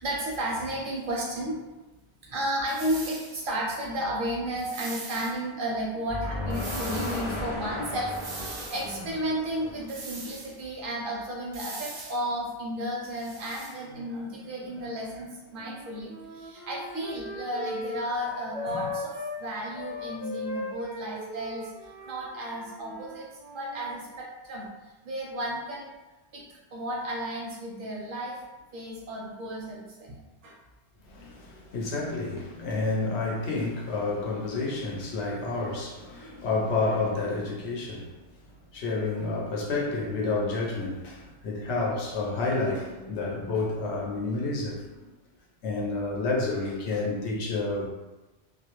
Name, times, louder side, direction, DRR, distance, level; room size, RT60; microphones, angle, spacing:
voice 1, 0.0-1.6 2.2-23.3 23.5-24.7 25.0-25.9 26.3-26.4 26.7-28.4 28.7-30.5, right 1 dB, 60° right, -3 dB, 0.6 m, -33 dB
sound 1, 2.7-3.4 4.6-5.3 6.5-7.3 8.1-8.9 9.9-10.6 11.5-12.2 13.0-13.7, right 3 dB, 85° right, 0.9 m, -41 dB
sound 2, 6.1-10.1, left 2 dB, 55° left, 0.3 m, -35 dB
Wind instrument woodwind instrument, 15.5-19.4 19.7-24.0, left 2 dB, 20° left, 0.6 m, -38 dB
voice 2, 31.0-38.2 38.7-45.1 45.6-47.8, left 3 dB, 80° left, -2 dB, 0.9 m, -30 dB
2.3 x 2.0 x 2.9 m, 1.1 s
omnidirectional pair, 1.1 m